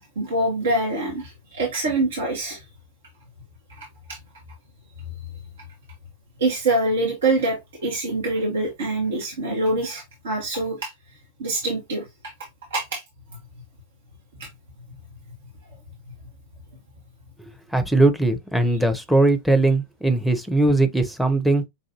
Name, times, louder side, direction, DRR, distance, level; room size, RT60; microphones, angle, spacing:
voice 1, 0.2-2.6 3.8-4.2 6.4-10.9 11.4-12.0 12.7-13.0 14.4-14.5, right 2 dB, 65° right, 1.3 m, -25 dB
voice 2, 17.7-21.6, right 2 dB, ahead, 0.8 m, -19 dB
5.6 x 2.6 x 2.7 m
figure-of-eight pair, 90°, 0 cm